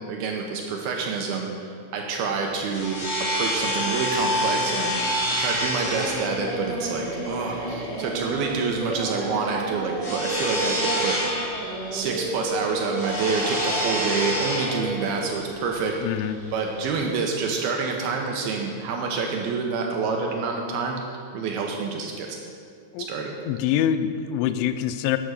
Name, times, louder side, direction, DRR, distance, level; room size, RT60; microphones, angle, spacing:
voice 1, 0.1-3.1 3.3-11.2 11.9-16.2 16.5-21.0 21.3-22.4 23.0-23.3, right 4 dB, 80° right, 1 dB, 2.2 m, -27 dB
sound 1, 2.5-16.9, equal, 25° left, 2.0 m, -29 dB
sound 2, 3.5-8.8, left 3 dB, 65° left, 2.4 m, -39 dB
Singing, 5.7-15.1, right 2 dB, 55° right, 4.4 m, -32 dB
voice 2, 16.0-16.4 22.9-23.1 23.5-25.2, left 10 dB, 85° left, 11 dB, 3.0 m, -24 dB
11.0 x 8.6 x 6.6 m, 2.2 s
omnidirectional pair, 5.5 m